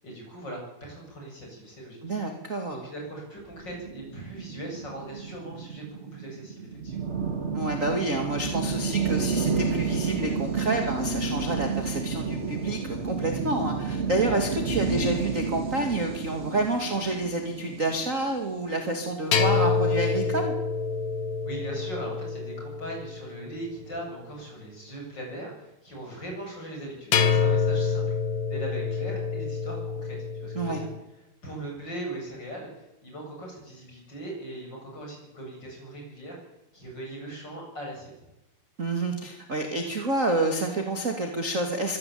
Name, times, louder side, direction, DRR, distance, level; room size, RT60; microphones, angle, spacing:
voice 1, 0.0-2.0 2.7-7.1 21.4-28.0 28.5-30.9 31.4-36.4 36.7-38.3, right 1 dB, 25° left, 0 dB, 8.7 m, -39 dB
voice 2, 2.0-2.8 7.5-20.5 30.5-30.8 38.8-42.0, right 2 dB, 25° right, 4 dB, 2.2 m, -28 dB
tinplate reverberated, 3.5-19.0, right 5 dB, 65° right, 0.6 m, -31 dB
sound 1, 19.3-23.6 27.1-31.0, left 5 dB, 60° left, 3.4 m, -27 dB
24.5 x 17.0 x 8.7 m, 0.95 s
omnidirectional pair, 4.7 m